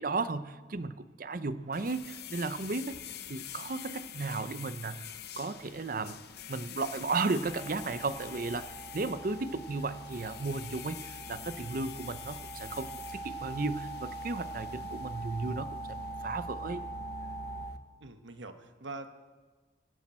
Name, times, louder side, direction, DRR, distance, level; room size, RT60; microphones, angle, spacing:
voice 1, 0.0-3.0 3.3-5.1 5.4-6.2 6.5-16.8, right 3 dB, 45° right, 13 dB, 0.6 m, -35 dB
sound 1, 1.7-17.8, left 9 dB, 55° left, 0.7 m, -47 dB
sound 2, 7.4-17.7, right 2 dB, 80° left, 2.6 m, -42 dB
voice 2, 18.0-19.1, right 3 dB, 75° right, 7 dB, 1.2 m, -44 dB
22.5 x 10.0 x 4.4 m, 1.3 s
head